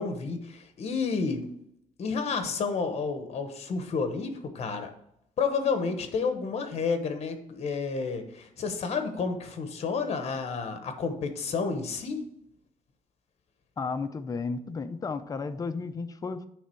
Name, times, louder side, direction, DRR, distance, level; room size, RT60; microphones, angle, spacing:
voice 1, 0.0-1.5 2.0-4.9 5.4-12.2, left 5 dB, 50° left, 8 dB, 1.0 m, -30 dB
voice 2, 13.8-16.5, left 4 dB, 25° left, 10 dB, 0.5 m, -33 dB
9.4 x 3.4 x 4.4 m, 0.77 s
cardioid pair, 150°, 14 cm